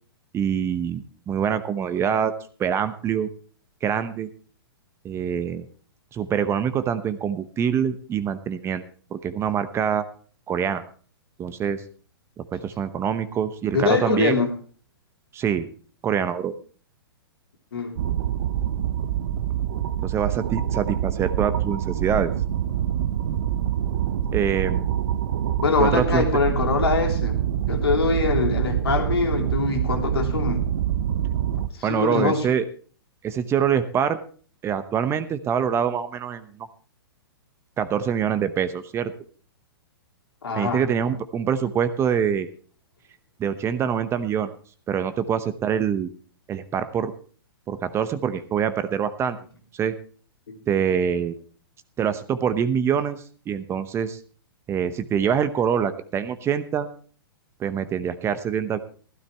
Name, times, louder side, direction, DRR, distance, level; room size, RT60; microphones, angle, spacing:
voice 1, 0.3-2.3 2.6-3.3 3.8-4.3 5.0-5.7 6.1-8.8 9.1-10.0 10.5-10.8 11.4-11.8 12.4-14.4 15.3-15.7 16.0-16.5 20.0-22.3 24.3-24.9 25.8-26.3 31.8-32.7 33.2-34.2 34.6-36.7 37.8-39.1 40.6-42.5 43.4-44.5 44.9-46.1 46.5-47.1 47.7-49.4 49.7-49.9 50.7-51.3 52.0-54.2 54.7-56.9 57.6-58.8, right 8 dB, 20° right, 12 dB, 0.8 m, -25 dB
voice 2, 13.7-14.5 17.7-17.9 25.6-27.4 27.7-30.6 31.7-32.5 40.4-40.8 50.5-50.6, left 5 dB, 75° left, 3 dB, 2.9 m, -23 dB
sound 1, 18.0-31.7, right 10 dB, 60° right, 0.8 m, -25 dB
15.0 x 13.0 x 3.4 m, 0.42 s
hypercardioid pair, 120°, 13 cm